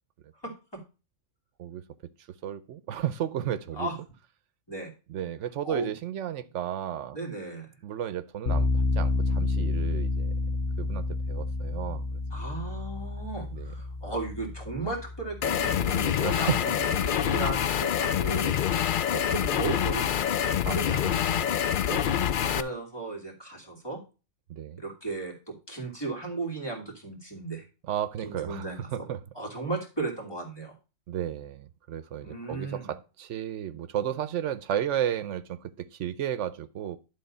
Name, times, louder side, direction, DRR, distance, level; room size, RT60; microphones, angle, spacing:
voice 1, 0.4-0.8 3.7-3.9 4.7-4.9 5.6-5.9 7.1-7.7 12.3-18.8 19.1-21.4 22.2-24.0 24.8-27.6 28.2-28.8 29.3-30.7 32.2-32.9, right 3 dB, 20° left, 2.8 m, -36 dB
voice 2, 2.4-3.9 5.1-7.2 7.8-10.3 10.8-12.2 13.5-13.7 16.2-16.6 20.7-20.8 21.0-21.6 21.9-22.1 24.5-24.8 27.9-29.2 31.1-37.0, right 10 dB, 80° right, 0.9 m, -33 dB
sound 1, 8.5-17.3, left 3 dB, 80° left, 1.4 m, -30 dB
sound 2, 15.4-22.6, left 9 dB, 60° left, 0.6 m, -26 dB
11.5 x 3.9 x 5.3 m
omnidirectional pair, 1.2 m